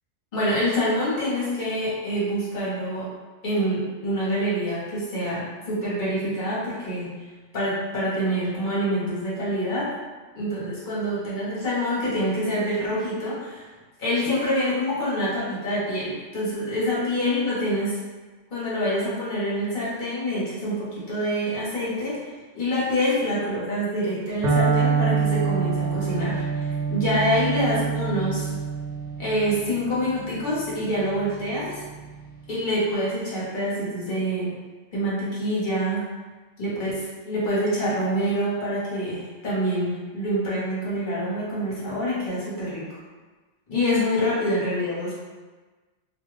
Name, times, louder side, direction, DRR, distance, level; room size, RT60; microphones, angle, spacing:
voice 1, 0.3-3.1 3.4-7.1 7.5-9.9 10.3-13.7 14.0-18.0 18.5-28.5 29.2-31.8 32.5-34.5 34.9-36.0 36.6-42.8 43.7-45.1, equal, 45° left, -8 dB, 1.2 m, -26 dB
Electric guitar, 24.4-32.3, right 5 dB, 85° right, 1.1 m, -27 dB
2.7 x 2.4 x 3.2 m, 1.3 s
omnidirectional pair, 1.2 m